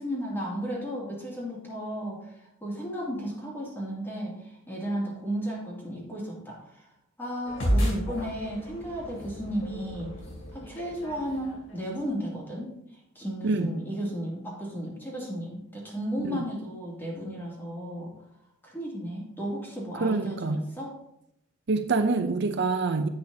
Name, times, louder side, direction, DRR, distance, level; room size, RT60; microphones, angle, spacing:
voice 1, 0.0-2.2 2.6-6.8 7.2-10.1 10.5-12.7 13.1-18.1 18.6-20.9, equal, 10° left, -4 dB, 2.6 m, -34 dB
sound 1, 7.5-12.1, equal, 65° left, 2.8 m, -32 dB
voice 2, 20.0-20.6 21.7-23.1, right 3 dB, 60° right, 7 dB, 0.6 m, -26 dB
10.5 x 8.2 x 2.8 m, 0.79 s
head